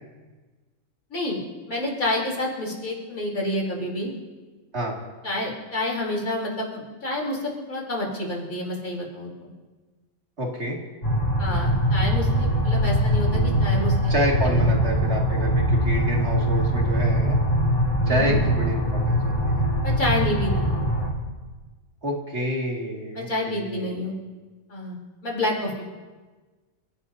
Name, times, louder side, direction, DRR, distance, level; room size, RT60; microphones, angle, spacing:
voice 1, 1.7-4.1 5.2-9.5 11.4-14.0 14.5-14.8 18.1-18.4 19.8-20.7 23.1-24.1 24.7-25.0 25.2-25.9, left 1 dB, 80° left, -3 dB, 4.2 m, -28 dB
voice 2, 10.4-10.8 14.1-17.4 18.1-19.6 22.0-24.0, right 1 dB, 50° right, -1 dB, 2.7 m, -28 dB
sound 1, 11.0-21.1, equal, 40° left, 2.8 m, -22 dB
29.5 x 16.0 x 2.8 m, 1.3 s
omnidirectional pair, 1.4 m